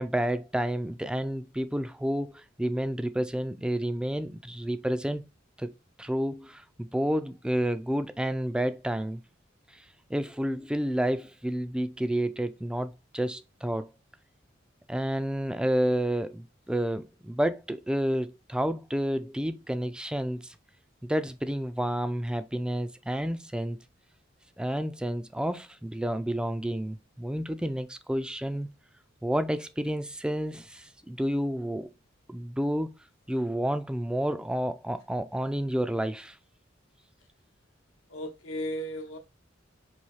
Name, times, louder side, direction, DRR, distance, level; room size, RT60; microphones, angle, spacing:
voice 1, 0.0-5.2 5.6-5.7 6.0-9.2 9.7-9.8 10.1-13.9 14.9-20.6 21.0-23.8 24.6-28.7 29.2-31.9 32.3-32.9 33.3-36.4, right 1 dB, 5° right, 0.3 m, -30 dB
voice 2, 38.1-39.2, equal, 85° left, 0.9 m, -35 dB
5.5 x 2.7 x 3.1 m
head